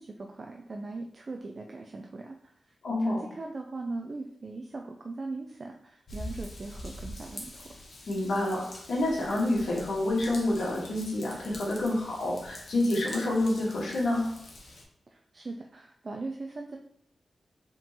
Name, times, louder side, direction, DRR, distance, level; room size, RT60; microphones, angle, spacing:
voice 1, 0.0-2.7 3.0-7.7 15.1-16.8, right 3 dB, 35° right, 2 dB, 0.4 m, -40 dB
voice 2, 2.8-3.2 8.1-14.2, left 1 dB, 85° left, -3 dB, 1.5 m, -28 dB
Raindrop / Vehicle horn car horn honking / Trickle dribble, 6.1-14.8, left 1 dB, 55° left, 1.0 m, -45 dB
4.9 x 3.7 x 2.9 m, 0.68 s
wide cardioid pair, 145°, 0 cm